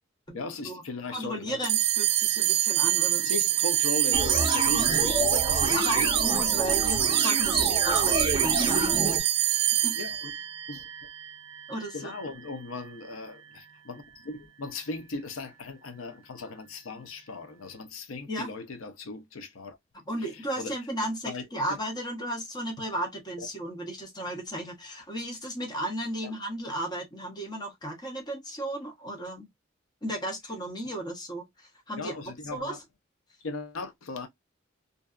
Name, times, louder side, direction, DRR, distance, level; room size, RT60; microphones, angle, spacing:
voice 1, 0.3-1.7 3.2-6.1 10.0-10.3 10.7-11.1 11.9-19.8 20.6-20.7 21.3-21.4 21.7-21.8 23.4-23.5 32.0-32.8 33.4-34.3, left 3 dB, 80° left, 0.6 m, -37 dB
voice 2, 1.1-3.3 4.8-4.9 5.7-9.9 11.7-12.2 18.3-18.5 20.1-29.5 30.0-32.1 32.5-32.8, right 1 dB, 20° left, 0.7 m, -34 dB
sound 1, 1.6-12.3, right 15 dB, 70° right, 0.3 m, -26 dB
sound 2, 4.1-9.2, right 2 dB, 25° right, 0.7 m, -28 dB
2.6 x 2.3 x 2.3 m
head